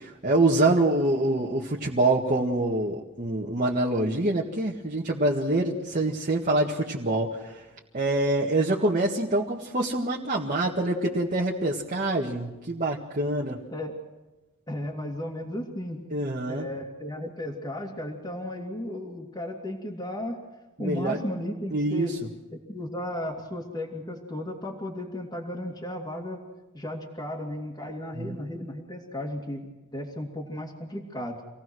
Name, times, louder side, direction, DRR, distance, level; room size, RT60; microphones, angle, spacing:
voice 1, 0.0-7.6 7.9-13.6 16.1-16.7 20.8-21.2 21.7-22.2 28.2-28.4, right 2 dB, 40° right, -2 dB, 1.9 m, -25 dB
voice 2, 14.7-16.0 16.5-20.4 20.8-22.2 22.5-26.4 26.7-31.4, left 1 dB, 20° left, -3 dB, 2.6 m, -35 dB
26.5 x 17.5 x 6.3 m, 1.1 s
head